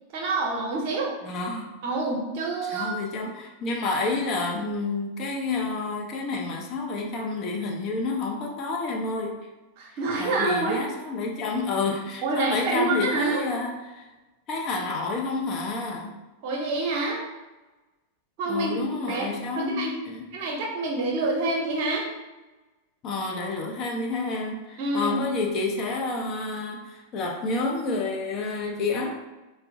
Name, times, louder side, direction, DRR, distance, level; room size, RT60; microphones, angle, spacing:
voice 1, 0.1-1.1 1.8-3.0 9.8-10.8 12.2-13.4 16.4-17.2 18.4-18.8 19.1-19.3 19.6-19.9 20.3-22.1 24.8-25.2, right 3 dB, 45° right, 0 dB, 0.7 m, -27 dB
voice 2, 1.2-1.7 2.6-9.5 10.2-14.1 14.5-16.1 18.5-20.3 23.0-29.1, left 3 dB, 35° left, 0 dB, 0.5 m, -29 dB
4.3 x 2.1 x 2.6 m, 1.1 s
figure-of-eight pair, 90°, 0 cm